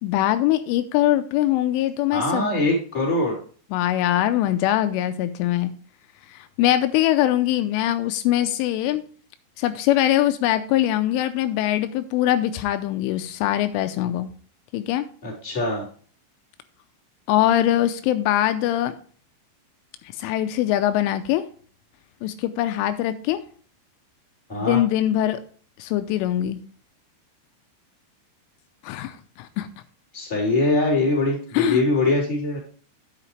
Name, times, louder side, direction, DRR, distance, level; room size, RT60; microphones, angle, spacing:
voice 1, 0.0-2.5 3.7-5.7 6.3-9.0 9.6-14.3 14.7-15.1 17.3-18.9 20.2-21.4 22.2-23.4 24.6-25.4 25.8-26.6 28.8-29.7 31.5-31.8, left 13 dB, 85° left, 10 dB, 3.1 m, -22 dB
voice 2, 2.1-3.4 15.2-15.8 24.5-24.8 30.1-32.6, left 2 dB, 10° left, -4 dB, 3.1 m, -22 dB
9.8 x 8.3 x 3.2 m, 0.43 s
omnidirectional pair, 5.7 m